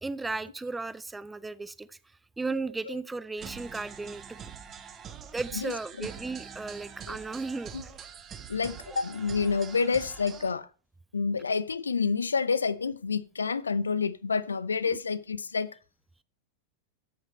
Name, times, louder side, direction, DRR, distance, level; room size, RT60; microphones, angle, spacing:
voice 1, 0.0-2.0 2.4-4.2 5.3-7.7 14.9-15.0, right 3 dB, 10° right, 0.5 m, -35 dB
sound 1, 3.4-10.5, right 7 dB, 25° right, 1.3 m, -44 dB
voice 2, 5.5-6.1 7.1-7.2 7.7-7.8 8.5-10.7 11.1-15.7, left 5 dB, 75° left, 0.5 m, -29 dB
12.0 x 8.1 x 4.2 m
figure-of-eight pair, 90°, 0 cm